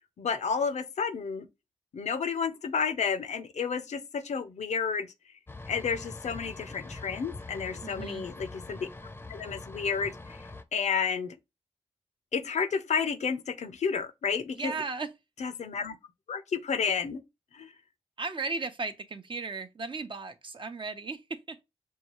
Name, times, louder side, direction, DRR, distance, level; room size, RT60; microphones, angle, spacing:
voice 1, 0.2-1.5 1.9-5.1 5.7-8.9 9.3-10.2 10.7-11.4 12.3-14.7 15.4-16.0 16.3-17.2 17.5-17.7, left 6 dB, 75° left, 0.6 m, -31 dB
sound 1, 5.5-10.6, left 2 dB, 15° left, 0.6 m, -43 dB
voice 2, 7.8-8.3 14.5-15.1 18.2-21.6, right 4 dB, 45° right, 0.7 m, -36 dB
5.5 x 2.3 x 3.0 m
cardioid pair, 55°, 12 cm